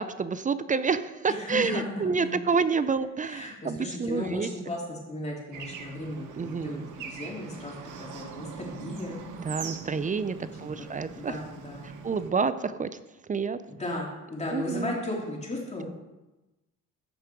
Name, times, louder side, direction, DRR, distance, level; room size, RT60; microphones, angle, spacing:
voice 1, 0.0-4.5 6.4-6.9 9.4-11.4 11.8-12.9 13.3-13.6 14.5-15.0, right 5 dB, 25° right, 13 dB, 0.5 m, -28 dB
voice 2, 1.3-2.3 3.2-9.2 10.4-10.8 11.1-11.9 13.7-15.8, left 2 dB, 20° left, -2 dB, 3.2 m, -36 dB
Bird / Traffic noise roadway noise, 5.5-12.3, right 6 dB, 80° right, 1.2 m, -42 dB
14.0 x 5.1 x 4.6 m, 1.1 s
cardioid pair, 90°, 30 cm